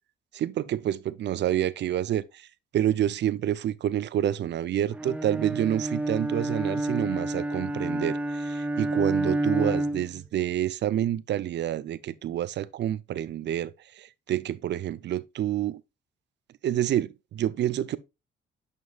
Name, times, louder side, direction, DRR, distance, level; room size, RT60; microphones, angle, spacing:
voice 1, 0.3-2.5 2.7-15.8 16.6-18.0, right 11 dB, 60° right, 0.6 m, -28 dB
Bowed string instrument, 4.9-10.2, right 1 dB, 5° right, 0.6 m, -29 dB
9.5 x 5.3 x 2.4 m
cardioid pair, 90°, 20 cm